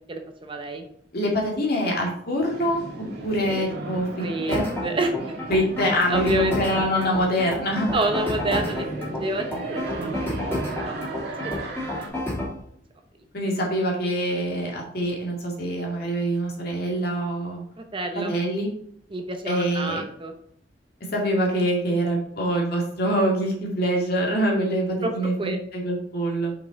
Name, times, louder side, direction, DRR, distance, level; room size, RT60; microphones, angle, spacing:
voice 1, 0.1-0.9 4.2-5.3 6.1-6.5 6.9-7.1 7.9-11.0 11.4-12.1 17.8-18.4 19.1-20.3 25.0-25.1 25.4-25.6, right 2 dB, 30° right, 5 dB, 0.7 m, -29 dB
voice 2, 1.1-2.8 3.2-4.7 5.5-7.9 13.3-17.6 18.1-18.7 19.4-20.0 21.1-26.5, equal, 55° left, -1 dB, 2.1 m, -25 dB
sound 1, 2.4-12.1, right 2 dB, 60° right, 1.9 m, -35 dB
sound 2, 4.5-12.5, left 1 dB, 10° left, 3.1 m, -30 dB
6.0 x 5.3 x 4.0 m, 0.67 s
head